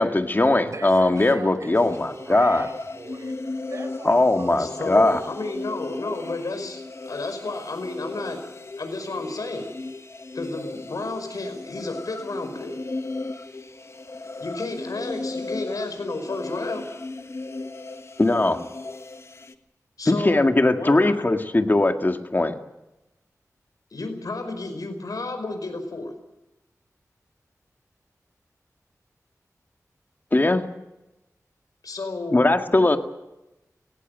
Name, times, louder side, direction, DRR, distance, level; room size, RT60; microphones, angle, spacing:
voice 1, 0.0-2.7 4.0-5.2 18.2-18.6 20.1-22.5 30.3-30.6 32.3-33.0, left 2 dB, 30° left, 6 dB, 2.0 m, -20 dB
voice 2, 0.6-5.3, right 2 dB, 55° right, 7 dB, 4.4 m, -40 dB
sound 1, 1.7-19.5, left 3 dB, 50° left, 1.5 m, -36 dB
voice 3, 4.6-8.5 8.8-9.7 10.3-12.8 14.4-16.9 20.0-21.2 23.9-26.1 31.8-32.4, left 2 dB, 80° left, 7 dB, 5.1 m, -32 dB
18.5 x 18.5 x 9.3 m, 0.94 s
wide cardioid pair, 80°, 6 cm